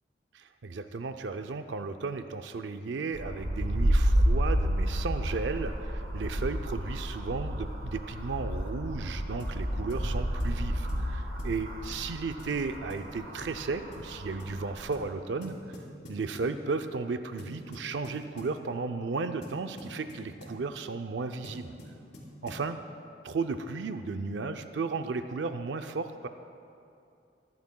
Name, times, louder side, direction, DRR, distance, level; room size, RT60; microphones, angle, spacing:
voice 1, 0.3-15.5 16.1-21.7 22.4-22.8 23.2-26.3, right 4 dB, 80° right, 8 dB, 0.5 m, -34 dB
sound 1, 3.1-15.0, equal, 60° right, 1.9 m, -31 dB
sound 2, 9.4-9.6 9.9-10.1 10.4-10.6 10.9-11.1 11.4-11.6 11.9-12.1 12.4-12.6 12.9-13.1 13.4-13.6 13.9-14.1 14.4-14.6 14.9-15.1 15.4-16.6 17.4-18.6 19.4-20.6 21.4-22.7, left 1 dB, 80° left, 3.0 m, -47 dB
23.5 x 11.0 x 2.3 m, 2.6 s
head